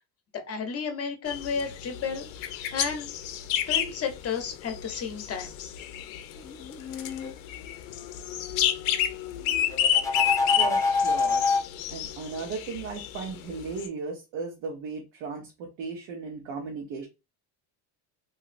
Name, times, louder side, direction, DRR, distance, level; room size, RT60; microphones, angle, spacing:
voice 1, 0.3-3.1 3.7-5.5, left 6 dB, 35° left, 5 dB, 0.8 m, -32 dB
sound 1, 1.3-13.9, left 10 dB, 85° left, 0.6 m, -31 dB
sound 2, 6.5-7.3 9.7-11.7, left 4 dB, 10° left, 0.4 m, -26 dB
voice 2, 10.6-11.4 11.9-17.1, right 4 dB, 80° right, 0 dB, 1.0 m, -36 dB
2.9 x 2.7 x 2.5 m, 0.27 s
cardioid pair, 120°, 43 cm